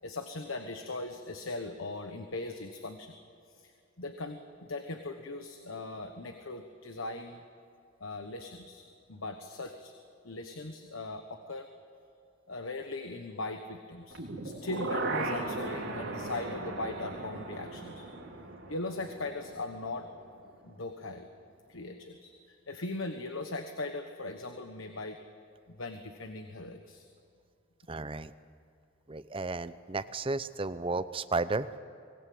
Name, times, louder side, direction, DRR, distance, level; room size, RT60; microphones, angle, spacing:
voice 1, 0.0-3.1 3.5-3.7 4.0-7.4 8.0-9.9 10.2-11.7 12.5-18.1 18.7-20.1 20.6-21.3 21.7-25.2 25.7-27.1, left 2 dB, 80° left, 6 dB, 1.3 m, -39 dB
sound 1, 14.1-20.1 20.5-20.6, right 2 dB, 75° right, 3.1 m, -37 dB
voice 2, 27.9-28.3 29.1-31.8, right 3 dB, 25° right, 13 dB, 0.6 m, -33 dB
25.0 x 18.5 x 7.9 m, 2.5 s
head